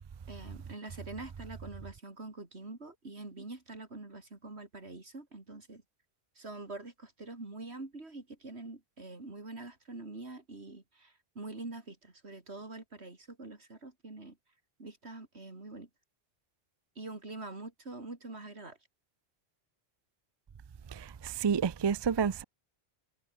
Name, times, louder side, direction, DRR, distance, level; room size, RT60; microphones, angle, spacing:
voice 1, 0.3-5.8 6.4-14.4 14.8-15.9 17.0-18.8, right 2 dB, 80° right, 3.9 m, -45 dB
voice 2, 20.9-22.4, right 7 dB, 40° right, 0.4 m, -30 dB
omnidirectional pair, 1.1 m